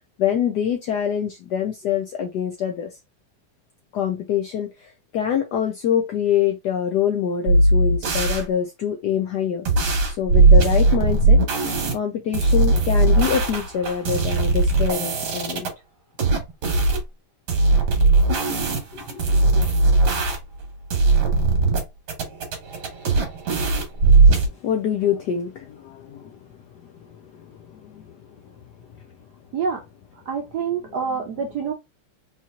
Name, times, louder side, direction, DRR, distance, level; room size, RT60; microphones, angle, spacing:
voice 1, 0.2-2.9 3.9-9.7 10.1-11.4 11.9-15.7 18.9-19.6 24.6-26.4 27.0-28.1 31.1-31.4, left 8 dB, 85° left, 0.9 m, -25 dB
sound 1, 7.5-8.4 9.7-11.9 12.3-15.7 16.2-17.0 17.5-20.6 20.9-21.8 22.1-24.5, right 3 dB, 55° right, 1.6 m, -18 dB
voice 2, 30.3-31.7, right 6 dB, 70° right, 0.9 m, -26 dB
4.3 x 2.8 x 2.4 m
omnidirectional pair, 2.4 m